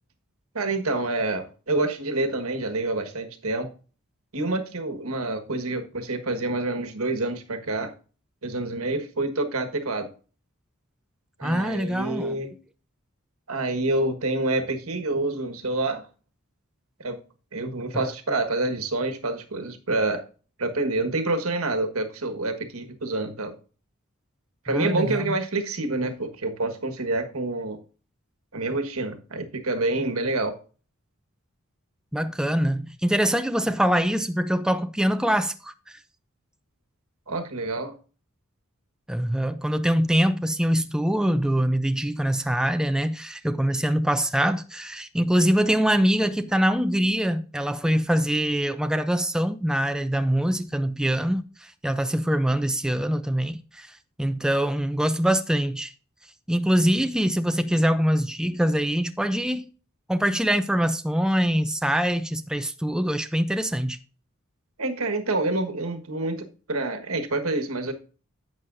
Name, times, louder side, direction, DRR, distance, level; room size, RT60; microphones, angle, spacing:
voice 1, 0.5-3.7 4.3-7.9 8.4-10.1 11.4-12.5 13.5-16.0 17.0-17.2 17.5-20.2 20.6-23.5 24.6-27.8 28.5-30.6 37.3-37.9 64.8-67.9, right 2 dB, 80° right, 1.5 m, -27 dB
voice 2, 11.4-12.4 17.9-18.1 24.7-25.4 32.1-36.0 39.1-55.9 56.5-59.7 60.1-64.0, equal, 5° right, 0.4 m, -24 dB
11.0 x 8.1 x 2.6 m
head